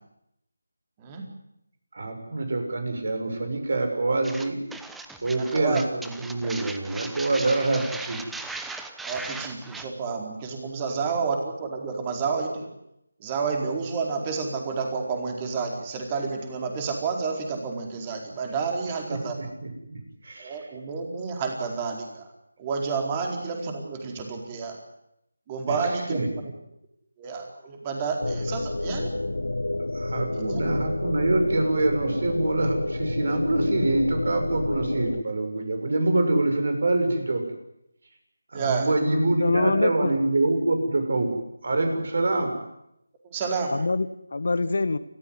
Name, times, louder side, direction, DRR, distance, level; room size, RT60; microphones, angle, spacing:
voice 1, 1.9-4.6 5.2-8.2 19.1-20.6 25.7-25.8 26.1-26.3 28.8-29.0 29.9-37.4 38.5-41.3 41.6-42.5, right 2 dB, 55° right, 6 dB, 6.7 m, -25 dB
sound 1, 4.2-9.8, right 3 dB, 5° right, 1.0 m, -38 dB
voice 2, 5.4-5.8 7.7-7.8 9.0-12.7 13.2-19.4 20.4-22.3 22.6-24.8 25.5-26.2 27.2-29.1 30.3-30.8 38.5-38.9 43.2-43.7, right 5 dB, 20° right, 2 dB, 4.4 m, -30 dB
sound 2, 28.2-35.2, left 2 dB, 80° left, 1.1 m, -29 dB
voice 3, 38.9-40.2 43.7-45.0, left 3 dB, 60° left, 13 dB, 1.5 m, -25 dB
29.0 x 15.0 x 9.7 m, 0.81 s
figure-of-eight pair, 160°, 0 cm